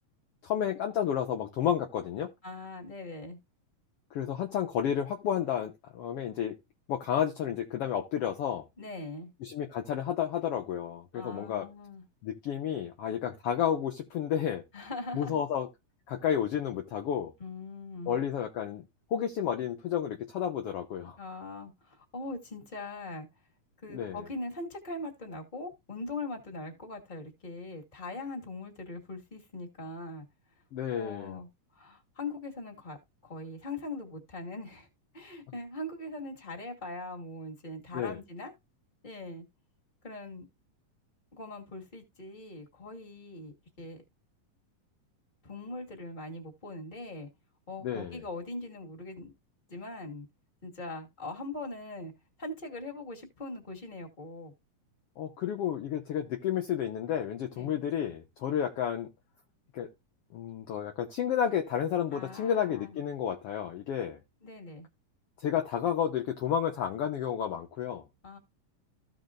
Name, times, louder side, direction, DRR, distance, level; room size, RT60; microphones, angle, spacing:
voice 1, 0.4-2.3 4.1-6.6 6.9-8.6 9.4-11.7 12.2-14.6 15.1-15.7 16.1-17.3 18.1-18.8 19.1-21.2 23.9-24.2 30.7-31.4 37.9-38.2 47.8-48.2 55.2-59.1 59.7-59.9 60.3-64.2 65.4-68.0, left 9 dB, 70° left, 1.4 m, -31 dB
voice 2, 2.4-3.4 8.8-9.3 11.1-12.0 14.7-15.4 17.4-18.2 21.2-23.3 23.8-30.2 30.9-31.5 31.7-33.0 33.2-34.9 35.1-38.5 39.0-39.4 40.0-40.5 41.3-44.0 45.4-47.3 47.7-49.3 49.7-50.3 50.6-52.1 52.4-54.5 57.5-57.7 62.1-62.9 64.4-64.9 68.2-68.4, left 2 dB, 15° left, 1.8 m, -41 dB
15.0 x 5.1 x 2.5 m
omnidirectional pair, 3.8 m